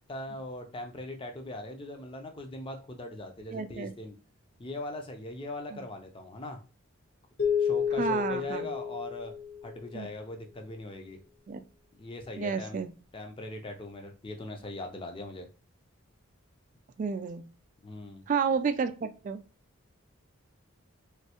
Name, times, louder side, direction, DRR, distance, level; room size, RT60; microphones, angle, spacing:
voice 1, 0.1-4.1 4.6-6.6 7.6-9.3 9.6-11.2 11.9-12.8 13.1-15.5 17.8-18.2, left 1 dB, 25° left, 4 dB, 0.5 m, -40 dB
voice 2, 3.5-3.9 5.7-5.8 8.0-8.7 9.9-10.1 11.5-11.6 12.4-12.9 17.0-17.4 18.3-19.4, right 6 dB, 40° right, 9 dB, 0.3 m, -31 dB
sound 1, 7.4-10.0, left 7 dB, 50° left, 0.8 m, -30 dB
3.2 x 2.6 x 2.9 m, 0.33 s
head